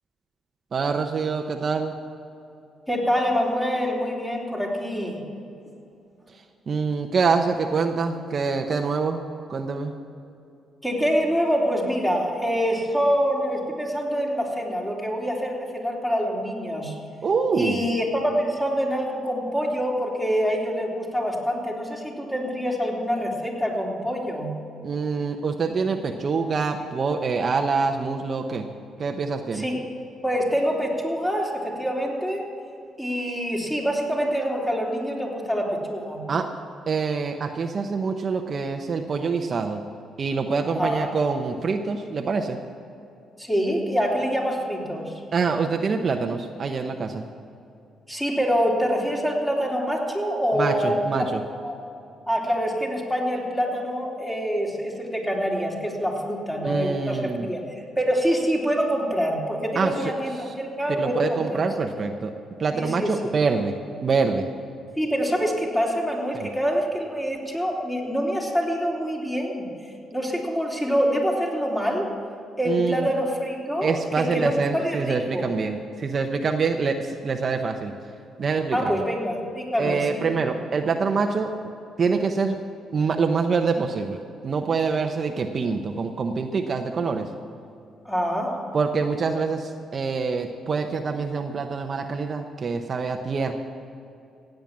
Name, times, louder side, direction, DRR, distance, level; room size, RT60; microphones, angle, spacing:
voice 1, 0.7-1.9 6.3-9.2 9.5-9.9 17.2-17.9 24.8-28.7 29.0-29.7 36.3-36.5 36.9-39.8 40.2-42.6 45.3-47.3 50.5-51.4 56.6-57.5 59.7-60.1 60.4-60.5 60.9-62.3 62.6-63.8 64.0-64.5 66.3-66.5 72.6-73.1 73.8-77.9 78.4-79.0 79.8-81.5 82.0-82.6 82.9-84.2 84.4-87.3 88.7-93.5, right 4 dB, 45° right, 4 dB, 0.9 m, -25 dB
voice 2, 2.9-5.2 10.8-16.9 17.5-24.5 29.5-29.8 30.2-32.4 33.0-36.2 40.7-41.1 43.4-45.1 48.1-51.2 51.6-51.8 52.3-57.6 58.0-61.6 62.7-63.1 65.0-69.7 70.1-72.1 72.6-75.5 78.7-80.3 88.0-88.6, equal, 10° left, -2 dB, 3.4 m, -25 dB
16.0 x 9.2 x 7.4 m, 2.6 s
cardioid pair, 90°, 0 cm